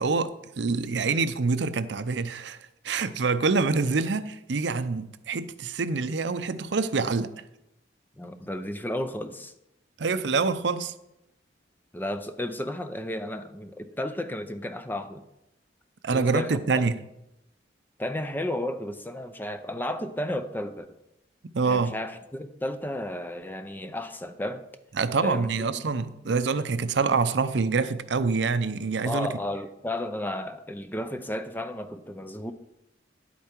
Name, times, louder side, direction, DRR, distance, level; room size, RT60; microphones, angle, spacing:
voice 1, 0.0-2.6 2.8-7.3 10.0-10.9 16.0-17.0 21.5-21.9 25.0-29.3, right 4 dB, 70° right, 0.6 m, -26 dB
voice 2, 8.2-9.5 11.9-15.3 16.1-16.6 18.0-20.9 21.6-24.6 25.2-25.5 25.7-25.8 26.3-26.4 29.0-32.5, left 1 dB, 10° left, 0.5 m, -33 dB
11.0 x 8.4 x 4.5 m
head